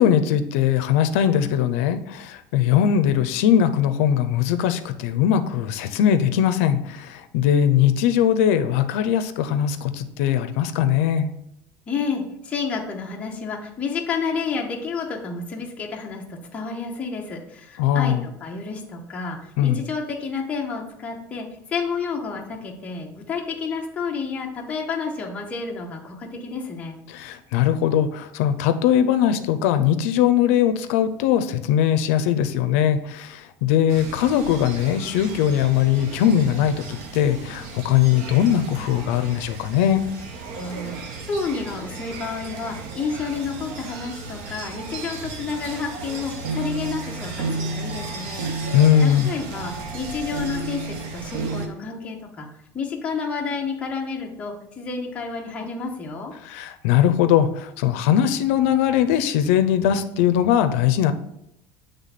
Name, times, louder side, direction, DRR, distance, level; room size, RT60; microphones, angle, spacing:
voice 1, 0.0-11.3 17.8-18.2 19.6-19.8 27.1-40.0 48.7-49.3 56.4-61.1, left 10 dB, 85° left, 10 dB, 0.5 m, -20 dB
voice 2, 11.9-27.0 40.5-41.0 41.3-52.5 52.7-56.3, left 5 dB, 20° left, 0 dB, 0.7 m, -30 dB
sound 1, 33.9-51.7, right 3 dB, 75° right, 1.0 m, -34 dB
7.5 x 3.3 x 4.1 m, 0.78 s
cardioid pair, 165°, 7 cm